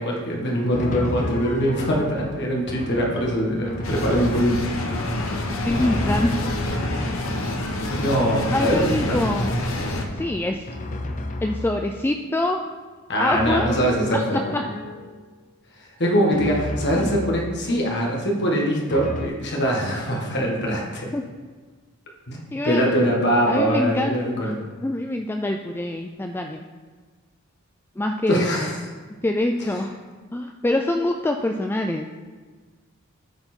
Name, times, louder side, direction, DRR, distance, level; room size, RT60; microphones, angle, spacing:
voice 1, 0.0-4.7 5.5-5.6 7.9-9.2 13.1-14.4 15.8-21.1 22.3-24.6 28.3-28.8, equal, 55° left, -1 dB, 1.7 m, -23 dB
Drum, 0.7-12.1 13.3-15.3 16.3-17.8 18.9-19.3, left 2 dB, 40° left, 0.7 m, -33 dB
sound 1, 3.8-10.1, left 1 dB, 75° left, 1.0 m, -27 dB
voice 2, 5.6-6.3 8.5-9.5 10.1-10.6 11.4-12.6 13.2-13.7 14.1-14.6 16.9-17.1 21.1-21.2 22.5-22.9 23.5-26.6 28.0-28.7 29.2-30.0 30.3-32.1, left 1 dB, 10° left, 4 dB, 0.3 m, -25 dB
13.0 x 4.5 x 4.4 m, 1.4 s
head